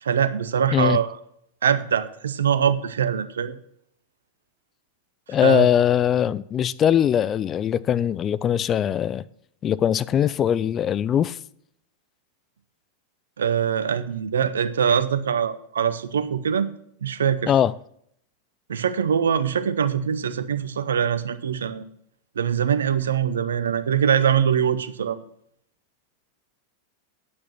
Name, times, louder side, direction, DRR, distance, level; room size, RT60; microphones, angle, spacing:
voice 1, 0.0-1.1 1.6-3.6 5.4-5.7 13.4-16.7 17.0-17.5 18.7-21.8 22.4-25.2, right 8 dB, 65° right, 0.8 m, -23 dB
voice 2, 5.3-9.2 9.6-11.4 17.5-17.7, left 9 dB, 25° left, 0.5 m, -21 dB
9.5 x 8.8 x 5.7 m
figure-of-eight pair, 90°, 0 cm